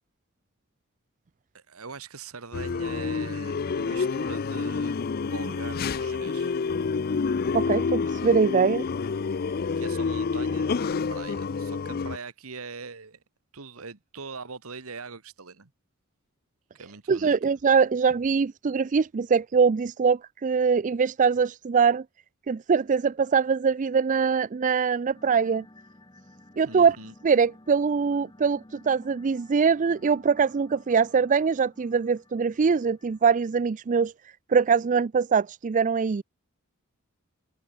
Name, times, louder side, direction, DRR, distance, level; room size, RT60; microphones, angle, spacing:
voice 1, 1.5-6.5 9.8-13.2 13.5-15.7 16.7-17.5 26.6-27.1, right 4 dB, 85° right, 1.6 m, -42 dB
sound 1, 2.5-12.2, left 5 dB, 45° left, 0.5 m, -28 dB
voice 2, 7.5-8.9 17.1-22.0 22.5-25.6 26.6-27.0 27.2-34.1 34.5-36.2, right 5 dB, 35° right, 0.4 m, -23 dB
sound 2, 25.1-33.5, left 1 dB, 20° left, 1.8 m, -54 dB
head